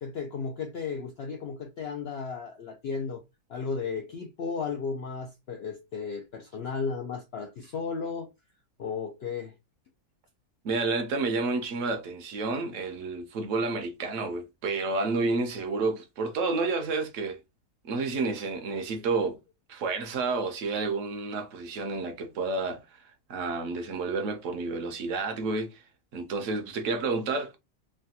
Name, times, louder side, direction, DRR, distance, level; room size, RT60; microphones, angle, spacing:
voice 1, 0.0-3.2 3.5-8.3 8.8-9.5, left 5 dB, 85° left, 0.5 m, -34 dB
voice 2, 10.6-17.4 17.8-19.4 19.7-25.8 26.1-27.6, right 3 dB, 65° right, 0.9 m, -30 dB
3.2 x 2.2 x 2.7 m
omnidirectional pair, 1.6 m